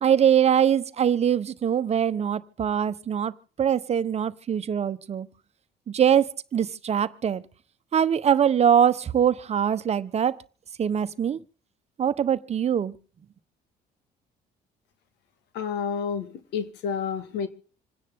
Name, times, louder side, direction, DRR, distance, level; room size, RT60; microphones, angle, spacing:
voice 1, 0.0-3.3 3.6-5.3 5.9-7.4 7.9-10.4 10.8-11.4 12.0-12.9, right 8 dB, 40° right, 1.0 m, -23 dB
voice 2, 15.5-17.5, left 7 dB, 85° left, 1.7 m, -30 dB
27.0 x 10.0 x 3.6 m
cardioid pair, 110°, 17 cm